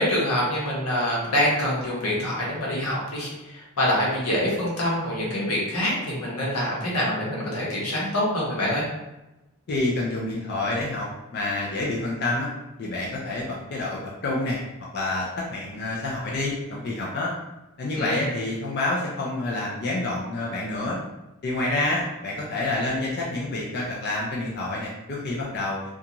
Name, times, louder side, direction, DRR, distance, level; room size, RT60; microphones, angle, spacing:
voice 1, 0.0-8.8 17.9-18.3, left 1 dB, 90° left, -5 dB, 0.9 m, -25 dB
voice 2, 9.7-12.5 12.8-14.6 14.9-17.3 17.8-21.0 21.4-25.8, left 2 dB, 50° left, -4 dB, 0.4 m, -28 dB
2.5 x 2.3 x 2.8 m, 0.99 s
head